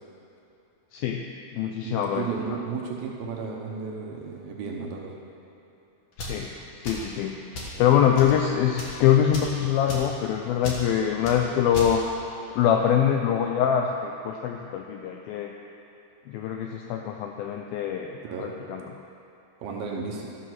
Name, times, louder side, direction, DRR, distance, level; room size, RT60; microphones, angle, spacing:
voice 1, 0.9-1.3 1.5-2.3 6.2-6.5 6.9-7.4 7.8-12.0 12.6-15.5 16.3-18.8, left 9 dB, 85° left, 3 dB, 2.1 m, -24 dB
voice 2, 1.8-5.1 18.2-18.5 19.6-20.3, right 5 dB, 75° right, -1 dB, 2.5 m, -33 dB
sound 1, 6.1-6.4 6.8-7.1 7.5-7.8 8.1-8.4 8.7-9.0 9.3-9.6 9.9-10.1 10.6-10.8 11.2-11.4 11.7-11.9, left 2 dB, 55° left, 1.5 m, -35 dB
13.0 x 6.4 x 6.1 m, 3.0 s
omnidirectional pair, 4.8 m